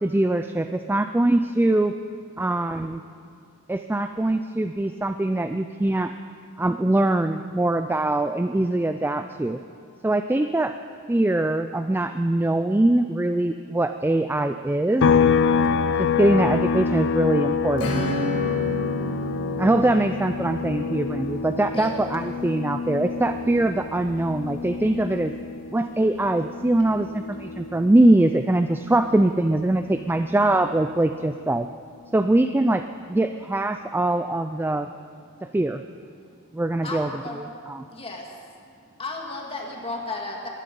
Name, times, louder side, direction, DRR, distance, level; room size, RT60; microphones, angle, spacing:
voice 1, 0.0-1.9 2.4-3.0 3.7-6.1 6.6-9.6 10.0-10.7 11.1-15.1 16.0-18.0 19.6-25.3 25.7-31.7 32.1-32.8 33.1-34.9 35.5-35.8 36.5-37.9, right 1 dB, 10° right, 8 dB, 0.3 m, -22 dB
voice 2, 3.1-3.6 9.9-10.0 27.5-27.8 32.0-32.1 33.9-34.0 34.8-35.6 36.1-36.6 37.8-38.0 38.6-39.0, equal, 55° right, -4 dB, 4.0 m, -61 dB
sound 1, 15.0-28.6 28.9-31.1, left 6 dB, 60° left, 0.5 m, -27 dB
Acoustic guitar / Strum, 17.8-24.0, left 1 dB, 90° left, 4.0 m, -32 dB
voice 3, 36.8-37.4 37.9-38.3 39.0-40.5, left 2 dB, 25° left, 0 dB, 2.1 m, -33 dB
22.0 x 11.5 x 5.4 m, 2.3 s
head